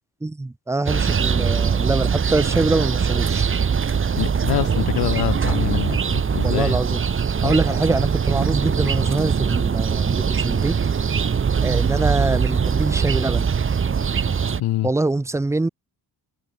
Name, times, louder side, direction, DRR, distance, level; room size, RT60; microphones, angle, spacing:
voice 1, 0.2-3.5 6.4-7.0 7.4-10.8 11.6-13.5 14.8-15.7, right 2 dB, 5° right, 0.5 m, -24 dB
sound 1, 0.9-14.6, right 6 dB, 30° right, 1.3 m, -21 dB
voice 2, 4.2-6.7 7.4-7.5 14.6-14.9, left 15 dB, 70° left, 0.7 m, -25 dB
wide cardioid pair, 160°, 39 cm